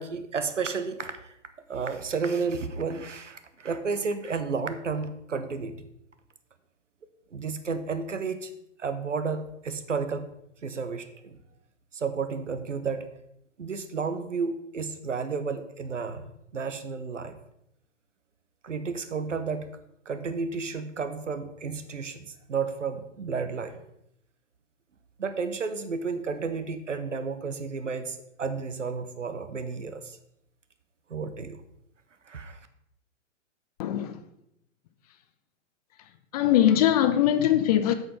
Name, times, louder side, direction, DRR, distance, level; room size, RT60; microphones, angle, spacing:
voice 1, 0.0-1.4 1.7-5.9 7.3-8.5 8.8-10.3 10.6-11.4 11.9-13.1 13.6-17.4 18.6-19.7 20.1-23.8 25.2-30.2 31.1-31.6 32.3-32.6, right 5 dB, 75° right, 1.1 m, -32 dB
voice 2, 33.8-34.2 36.3-37.9, left 11 dB, 30° left, 0.7 m, -21 dB
7.9 x 6.6 x 5.2 m
figure-of-eight pair, 115°, 38 cm